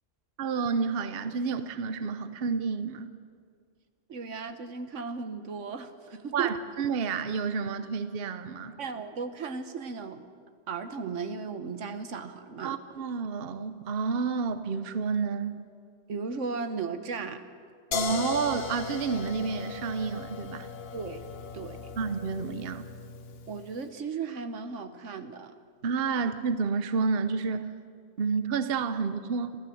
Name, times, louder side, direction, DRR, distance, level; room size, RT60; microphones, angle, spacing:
voice 1, 0.4-3.1 6.3-8.8 12.6-15.6 17.9-20.7 22.0-22.8 25.8-27.7 28.2-29.6, right 5 dB, 55° right, 11 dB, 1.0 m, -30 dB
voice 2, 4.1-6.5 8.8-10.2 10.7-12.7 16.1-17.5 20.9-21.2 21.5-21.9 23.5-25.5, right 5 dB, 85° right, 9 dB, 1.5 m, -36 dB
sound 1, 17.9-23.7, left 6 dB, 55° left, 1.1 m, -37 dB
26.5 x 14.0 x 7.8 m, 2.2 s
omnidirectional pair, 1.2 m